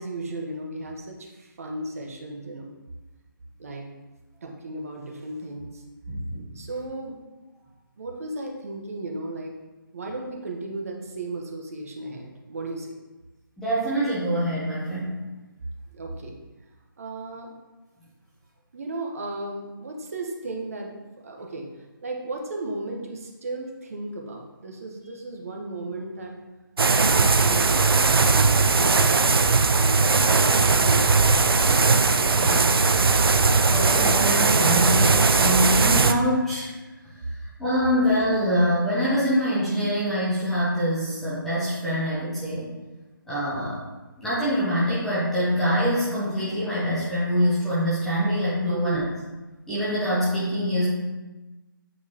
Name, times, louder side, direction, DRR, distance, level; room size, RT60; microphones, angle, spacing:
voice 1, 0.0-2.7 3.6-3.8 4.4-5.8 6.5-7.2 8.0-9.5 9.9-12.9 15.9-16.4 17.0-17.5 18.7-20.9 21.2-21.7 22.0-26.3 27.1-28.8 29.8-30.2 30.7-31.9 48.6-49.0, right 2 dB, 40° right, 1 dB, 1.0 m, -35 dB
voice 2, 6.1-6.6 13.6-15.2 32.3-32.7 33.7-36.7 37.0-37.1 37.6-42.7 43.3-43.8 44.2-49.0 49.7-50.9, equal, ahead, -11 dB, 0.6 m, -25 dB
sound 1, 26.8-36.1, right 4 dB, 85° right, 0.5 m, -19 dB
8.3 x 4.6 x 2.8 m, 1.1 s
figure-of-eight pair, 165°, 12 cm